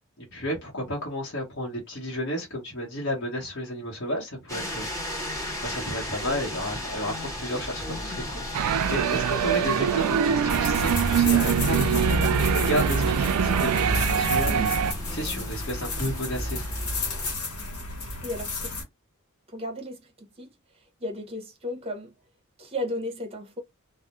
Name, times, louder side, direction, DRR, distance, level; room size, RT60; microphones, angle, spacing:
voice 1, 0.3-16.7, equal, 50° left, 1.0 m, -32 dB
sound 1, 4.5-17.3, left 1 dB, 15° left, 1.0 m, -36 dB
sound 2, 8.5-14.9, right 8 dB, 90° right, 0.3 m, -24 dB
sound 3, 10.5-18.8, left 1 dB, 75° left, 1.0 m, -29 dB
voice 2, 18.2-18.8 19.5-22.1 22.6-23.6, left 1 dB, 25° right, 0.7 m, -35 dB
2.4 x 2.0 x 2.9 m
head